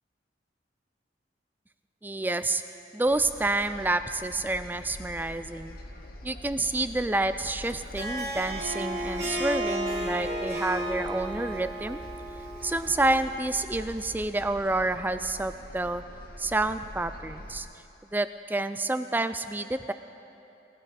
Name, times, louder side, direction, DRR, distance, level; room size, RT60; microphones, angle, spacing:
voice 1, 2.0-2.6 2.9-5.8 6.2-12.0 12.6-16.0 16.4-17.7 18.1-19.9, right 2 dB, 10° right, 11 dB, 0.3 m, -29 dB
sound 1, 3.1-17.6, left 1 dB, 55° left, 0.9 m, -44 dB
Harp, 7.8-13.2, right 1 dB, 65° right, 2.6 m, -33 dB
19.5 x 12.5 x 4.1 m, 2.8 s
head